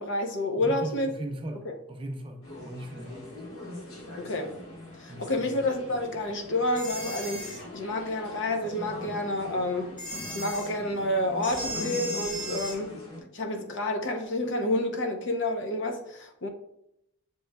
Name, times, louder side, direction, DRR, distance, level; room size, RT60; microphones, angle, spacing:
voice 1, 0.0-1.1 1.6-1.7 4.2-4.5 5.0-9.9 10.3-12.9 13.3-16.5, left 1 dB, 60° left, 0.6 m, -29 dB
voice 2, 0.6-3.4 5.1-5.6, right 1 dB, 25° right, 0.5 m, -38 dB
sound 1, 2.4-13.2, left 1 dB, 90° left, 1.3 m, -42 dB
sound 2, 6.8-7.6 10.0-10.7 11.4-12.8, equal, 5° left, 1.1 m, -36 dB
7.7 x 3.0 x 2.2 m
head